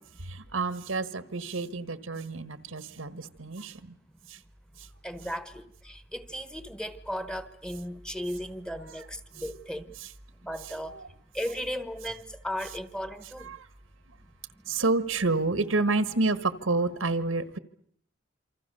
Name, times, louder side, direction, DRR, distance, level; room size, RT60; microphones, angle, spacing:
voice 1, 0.2-3.9 4.3-4.4 10.9-11.0 13.4-13.7 14.7-17.6, right 3 dB, 80° right, 1.4 m, -29 dB
voice 2, 2.1-3.3 5.0-9.9 10.4-11.0 11.3-13.5, equal, 5° left, 1.2 m, -36 dB
27.5 x 25.5 x 6.8 m
head